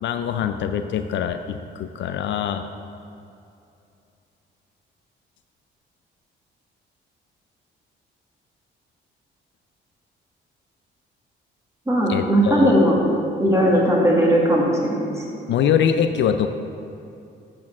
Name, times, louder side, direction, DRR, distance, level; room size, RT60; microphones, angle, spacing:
voice 1, 0.0-2.7 12.1-12.8 15.5-16.5, left 8 dB, 65° left, 8 dB, 0.5 m, -23 dB
voice 2, 11.9-13.0 13.4-15.2, equal, 15° right, -3 dB, 1.7 m, -18 dB
8.3 x 4.5 x 7.3 m, 2.6 s
cardioid pair, 90°, 20 cm